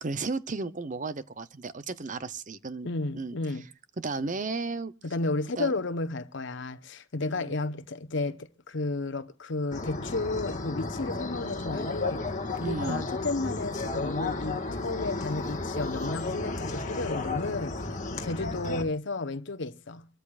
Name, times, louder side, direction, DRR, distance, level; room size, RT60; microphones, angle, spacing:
voice 1, 0.0-3.4 4.0-4.9 5.6-5.7 7.3-7.5 12.6-13.1, right 3 dB, 40° right, 0.8 m, -34 dB
voice 2, 2.8-3.7 5.0-12.3 12.6-17.8 18.2-20.1, left 2 dB, 60° left, 1.0 m, -32 dB
sound 1, 9.7-18.8, left 3 dB, 40° left, 1.7 m, -33 dB
25.0 x 13.5 x 2.4 m
head